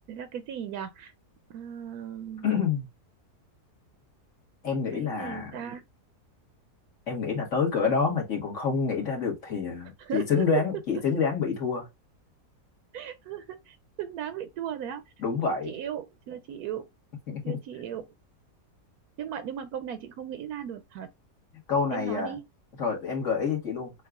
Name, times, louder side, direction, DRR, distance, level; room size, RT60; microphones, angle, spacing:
voice 1, 0.1-1.1 1.5-2.5 4.9-5.9 10.0-10.4 12.9-15.0 15.5-16.9 17.4-18.0 19.2-21.1 21.9-22.4, right 9 dB, 75° right, 1.0 m, -37 dB
voice 2, 2.4-2.9 4.6-5.5 7.1-11.9 15.2-15.7 17.3-17.6 21.7-22.3 22.8-23.9, left 5 dB, 50° left, 1.8 m, -27 dB
6.3 x 2.4 x 2.3 m
omnidirectional pair, 1.7 m